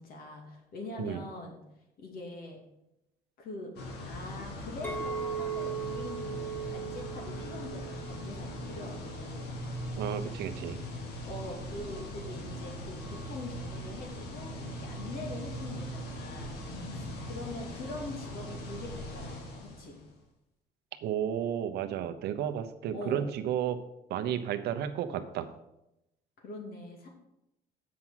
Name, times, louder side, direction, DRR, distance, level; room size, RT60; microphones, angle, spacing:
voice 1, 0.0-1.6 2.0-2.6 3.4-9.5 11.2-16.6 16.9-20.0 22.9-23.3 26.4-27.1, left 2 dB, 60° left, 1 dB, 2.6 m, -43 dB
sound 1, 3.8-20.1, equal, 75° left, 1.8 m, -40 dB
Chink clink, 4.8-9.2 9.6-10.0, right 7 dB, 10° left, 1.3 m, -39 dB
voice 2, 10.0-10.9 21.0-23.8 24.1-25.5, right 9 dB, 75° right, 9 dB, 0.8 m, -32 dB
7.5 x 6.0 x 5.7 m, 0.87 s
cardioid pair, 110°, 17 cm